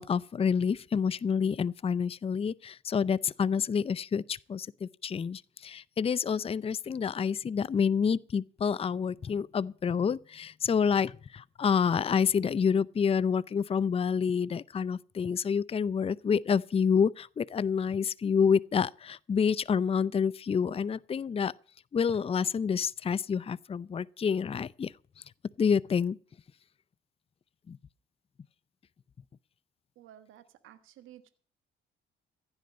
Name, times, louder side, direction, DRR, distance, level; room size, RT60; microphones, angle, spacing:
voice 1, 0.0-21.5 21.9-24.9 25.6-26.2 27.7-27.8, left 6 dB, 30° left, 0.5 m, -28 dB
voice 2, 30.0-31.3, right 11 dB, 85° right, 1.4 m, -53 dB
15.5 x 10.5 x 5.3 m
cardioid pair, 90°, 20 cm